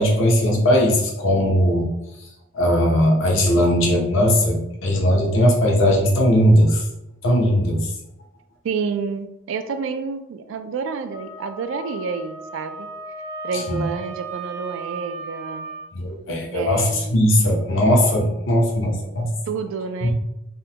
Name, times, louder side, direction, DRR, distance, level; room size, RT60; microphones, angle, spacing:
voice 1, 0.0-1.9 2.5-6.8 7.2-7.9 13.7-13.9 15.9-19.3 20.0-20.1, equal, 75° left, 0 dB, 0.7 m, -18 dB
voice 2, 8.6-12.9 13.4-15.7 16.5-17.3 19.5-20.1, right 5 dB, 75° right, 9 dB, 0.3 m, -29 dB
Wind instrument woodwind instrument, 11.1-15.9, right 3 dB, 30° right, 0.6 m, -36 dB
3.6 x 2.1 x 2.8 m, 0.87 s
head